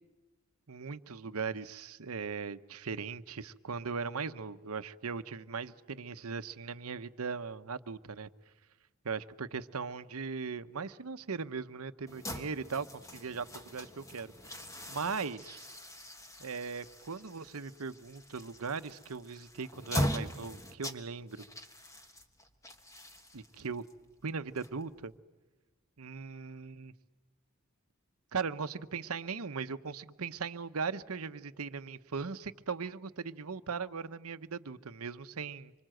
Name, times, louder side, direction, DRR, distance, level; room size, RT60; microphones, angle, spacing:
voice 1, 0.7-8.3 9.0-12.9 13.1-14.3 14.9-15.7 16.4-21.5 23.3-23.8 24.2-25.1 26.0-26.9 28.3-35.7, right 5 dB, 85° right, 0.9 m, -39 dB
sound 1, 12.1-25.1, equal, 15° left, 1.3 m, -41 dB
26.0 x 25.0 x 7.8 m
head